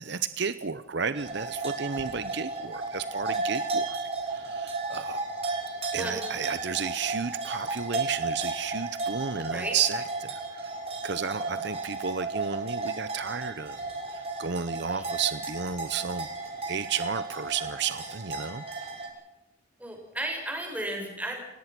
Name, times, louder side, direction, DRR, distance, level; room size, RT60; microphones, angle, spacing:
voice 1, 0.0-4.0 4.3-5.3 5.9-10.8 11.0-13.8 14.1-16.3 16.7-18.6, right 6 dB, 55° right, 13 dB, 0.8 m, -32 dB
sound 1, 1.1-19.1, right 3 dB, 30° right, 6.9 m, -34 dB
voice 2, 19.8-21.4, right 1 dB, 5° right, 1 dB, 6.9 m, -34 dB
29.5 x 18.0 x 6.1 m, 0.99 s
head